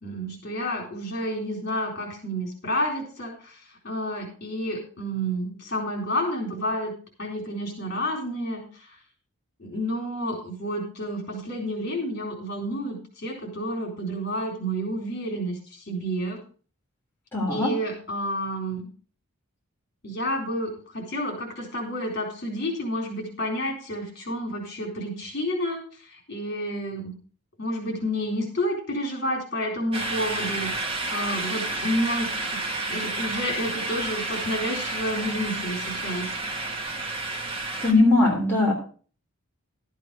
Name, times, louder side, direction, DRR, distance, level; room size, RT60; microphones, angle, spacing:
voice 1, 0.0-3.5 3.8-6.9 7.2-8.6 9.6-15.6 15.9-16.4 17.5-18.8 20.0-25.8 26.3-27.1 27.6-36.3, equal, 45° left, 1 dB, 3.9 m, -30 dB
voice 2, 17.3-17.7 37.8-38.7, left 2 dB, 10° left, -4 dB, 3.4 m, -20 dB
sound 1, 29.9-37.9, right 2 dB, 25° right, 1.7 m, -30 dB
12.5 x 8.2 x 4.8 m, 0.40 s
head